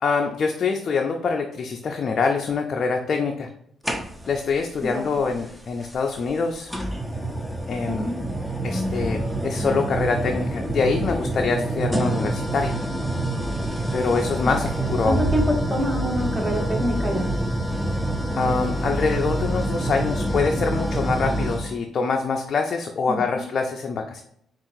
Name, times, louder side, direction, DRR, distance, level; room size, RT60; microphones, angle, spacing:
voice 1, 0.0-3.5 4.3-6.7 7.7-8.1 8.6-12.8 13.9-15.2 18.3-24.2, left 4 dB, 50° left, 3 dB, 0.4 m, -25 dB
sound 1, 3.8-4.5 5.8-5.9 6.7-21.7, right 1 dB, ahead, 0.5 m, -26 dB
voice 2, 4.8-5.1 7.9-8.1 14.4-17.3 23.1-23.2, equal, 20° right, 0 dB, 1.2 m, -26 dB
5.5 x 2.4 x 2.6 m, 0.72 s
cardioid pair, 90°, 0 cm